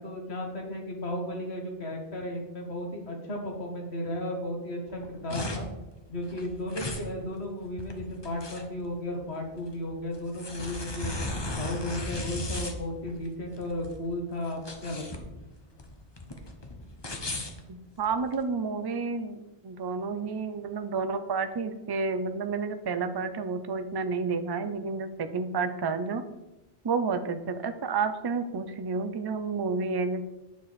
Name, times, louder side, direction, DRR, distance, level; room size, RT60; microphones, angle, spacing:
voice 1, 0.0-5.7 6.1-11.1 11.5-15.0, left 1 dB, 80° left, 1 dB, 1.9 m, -34 dB
sound 1, 4.9-18.4, left 2 dB, 25° left, 0.9 m, -37 dB
voice 2, 17.7-19.4 19.6-26.2 26.8-30.3, right 4 dB, 30° right, 9 dB, 0.5 m, -30 dB
9.3 x 6.8 x 4.2 m, 1.0 s
omnidirectional pair, 1.1 m